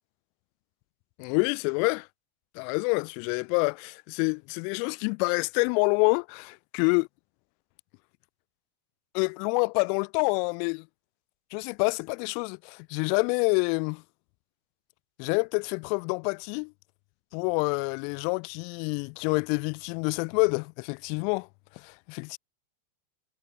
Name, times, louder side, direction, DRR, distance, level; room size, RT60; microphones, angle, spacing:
voice 1, 1.2-2.1 2.5-7.0 9.1-10.9 11.5-14.0 15.2-16.7 17.3-21.5 21.8-22.4, left 40 dB or more, 45° left, 7.1 m, -27 dB
figure-of-eight pair, 90°, 0 cm